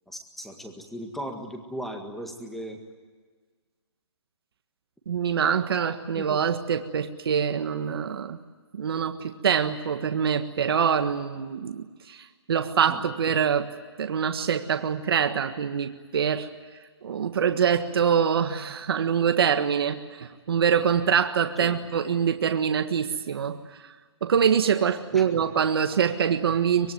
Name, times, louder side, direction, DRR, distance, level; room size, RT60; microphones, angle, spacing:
voice 1, 0.1-2.8 6.1-6.3 12.9-13.0 21.6-21.8 25.1-25.4, equal, ahead, 4 dB, 1.9 m, -37 dB
voice 2, 5.1-8.4 8.7-13.7 14.0-16.5 17.0-23.6 23.8-23.9 24.2-26.9, right 7 dB, 55° right, 7 dB, 1.6 m, -25 dB
24.5 x 22.0 x 9.4 m, 1.5 s
hypercardioid pair, 170°, 15 cm